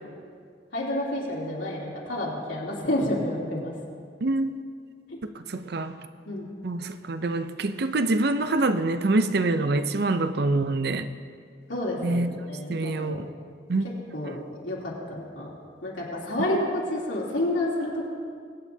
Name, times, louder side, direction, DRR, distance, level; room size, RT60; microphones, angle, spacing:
voice 1, 0.7-3.7 5.1-5.2 6.3-6.5 11.7-13.3 13.8-14.4 14.6-15.5 15.8-18.1, left 1 dB, 85° left, -5 dB, 3.1 m, -29 dB
voice 2, 4.2-4.6 5.4-6.0 6.6-11.1 12.0-12.3 12.7-13.3 13.7-13.8, right 2 dB, 55° right, 11 dB, 0.5 m, -25 dB
22.5 x 9.2 x 2.8 m, 2.1 s
head